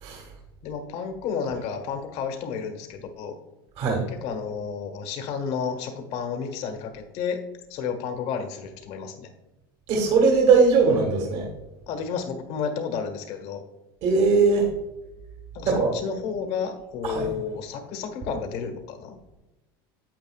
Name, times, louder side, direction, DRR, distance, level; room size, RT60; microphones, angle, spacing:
voice 1, 0.6-3.4 4.1-7.4 7.7-9.3 11.9-13.6 15.5-19.2, left 6 dB, 60° left, 5 dB, 1.4 m, -31 dB
voice 2, 9.9-11.5 14.0-14.7 15.7-15.9 17.0-17.3, right 4 dB, 55° right, 0 dB, 1.8 m, -20 dB
9.2 x 8.2 x 2.4 m, 1.0 s
hypercardioid pair, 95°, 13 cm